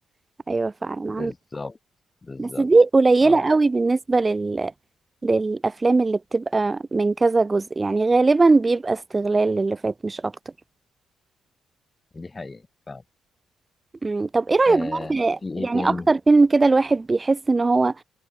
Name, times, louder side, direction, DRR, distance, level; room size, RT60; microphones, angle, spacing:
voice 1, 0.5-1.3 2.4-4.7 5.2-10.3 14.0-17.9, right 3 dB, 25° right, 1.6 m, -20 dB
voice 2, 1.1-1.8 2.2-2.7 3.2-3.4 12.1-13.0 14.7-15.1 15.4-16.1, left 3 dB, 25° left, 1.2 m, -34 dB
figure-of-eight pair, 40°, 0 cm